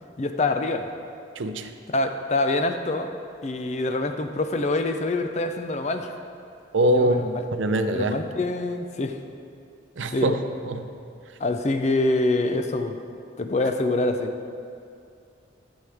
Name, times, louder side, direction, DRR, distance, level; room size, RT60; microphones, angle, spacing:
voice 1, 0.2-0.9 1.9-3.1 3.4-6.1 6.9-7.4 7.9-9.2 10.1-10.3 11.4-13.0 13.4-14.3, left 2 dB, 35° left, 7 dB, 0.5 m, -25 dB
voice 2, 1.4-1.7 6.7-8.2 10.0-10.4 10.7-10.9, right 1 dB, 85° right, 8 dB, 0.6 m, -23 dB
12.5 x 7.2 x 3.5 m, 2.5 s
head